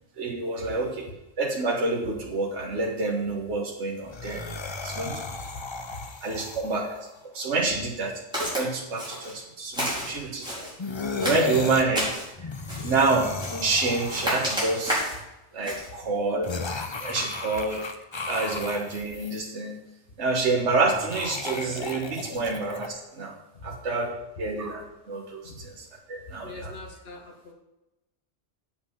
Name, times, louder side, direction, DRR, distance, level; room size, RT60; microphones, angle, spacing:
voice 1, 0.2-1.1 1.4-4.4 4.8-5.2 6.2-10.7 11.2-12.1 12.8-15.0 15.5-16.5 17.0-17.9 18.3-19.8 20.2-23.3 23.6-24.1 24.4-26.7, right 3 dB, 75° right, -1 dB, 1.5 m, -28 dB
sound 1, 4.0-7.1 10.8-11.9 12.4-15.2 16.4-19.4 20.9-22.9, left 3 dB, 30° left, 0.6 m, -35 dB
voice 2, 5.3-5.6 5.9-6.0 23.5-23.8 25.4-25.7 26.4-27.5, left 2 dB, 60° left, 1 dB, 1.9 m, -42 dB
Walk footsteps, 8.3-8.6 9.0-9.4 9.7-10.7 11.2-12.3 12.7-13.0 13.4-13.7 14.1-15.2 15.6-15.9, equal, 5° right, 4.5 m, -30 dB
8.1 x 6.7 x 7.1 m, 0.95 s
omnidirectional pair, 1.2 m